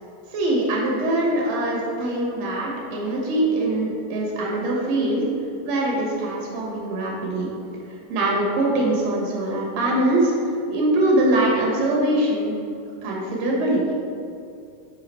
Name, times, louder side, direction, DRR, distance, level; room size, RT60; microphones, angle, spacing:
voice 1, 0.3-5.3 5.6-7.5 8.1-12.5 13.0-13.8, right 1 dB, 60° right, -3 dB, 2.2 m, -22 dB
5.6 x 5.0 x 4.4 m, 2.6 s
omnidirectional pair, 3.6 m